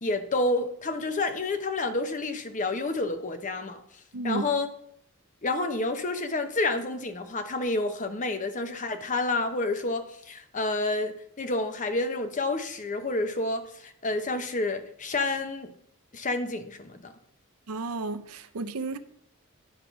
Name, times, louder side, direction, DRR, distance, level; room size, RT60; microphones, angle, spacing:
voice 1, 0.0-3.8 4.2-4.7 5.4-15.7 16.1-17.1, left 2 dB, 35° left, 0.8 m, -29 dB
voice 2, 17.7-19.0, right 3 dB, 90° right, 0.6 m, -32 dB
10.5 x 3.7 x 5.9 m
head